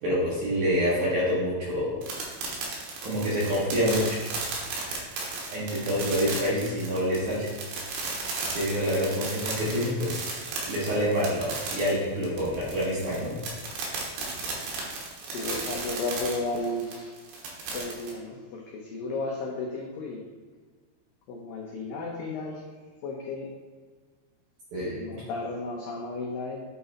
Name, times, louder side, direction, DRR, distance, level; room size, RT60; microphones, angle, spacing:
voice 1, 0.0-2.0 3.0-4.2 5.5-7.5 8.5-10.4 10.7-13.3 24.7-25.0, equal, 60° right, -7 dB, 2.2 m, -27 dB
sound 1, 2.0-18.1, right 4 dB, 80° right, 3.4 m, -35 dB
voice 2, 15.2-17.1 17.7-20.2 21.3-22.6 23.0-23.5 24.8-26.6, left 2 dB, 85° left, -1 dB, 2.0 m, -33 dB
8.7 x 4.0 x 4.1 m, 1.5 s
omnidirectional pair, 5.0 m